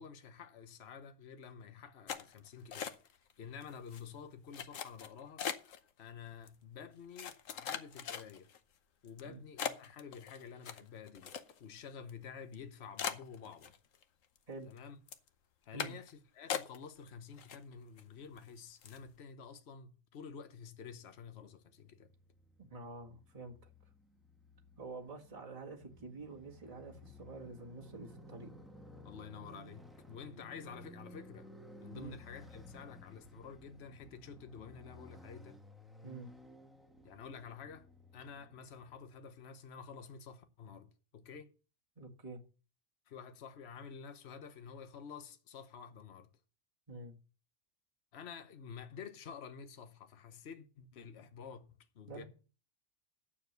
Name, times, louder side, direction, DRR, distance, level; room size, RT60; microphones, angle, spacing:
voice 1, 0.0-2.9 3.4-5.5 6.0-8.5 9.0-13.7 14.6-15.0 15.7-22.1 29.0-31.5 31.8-35.6 37.0-37.9 38.1-41.5 43.1-46.3 48.1-52.2, left 6 dB, 55° left, 1.3 m, -50 dB
sound 1, 2.1-3.3 3.6-4.0 4.5-5.8 6.5-6.6 7.2-8.6 9.1-9.2 9.6-11.8 12.1-12.2 12.5-12.6 13.0-14.0 14.4-14.8 15.1-15.3 15.8-16.1 16.5-17.1 17.4-18.0 18.4-18.5 18.8-19.1, left 8 dB, 80° left, 1.3 m, -40 dB
Motorcycle, 21.1-39.3, left 1 dB, ahead, 1.2 m, -57 dB
voice 2, 22.6-23.7 24.8-28.5 30.3-30.4 31.9-32.2 36.0-36.3 42.0-42.4 46.9-47.2 52.1-52.2, right 3 dB, 30° right, 1.8 m, -48 dB
9.3 x 7.1 x 6.7 m
omnidirectional pair, 1.3 m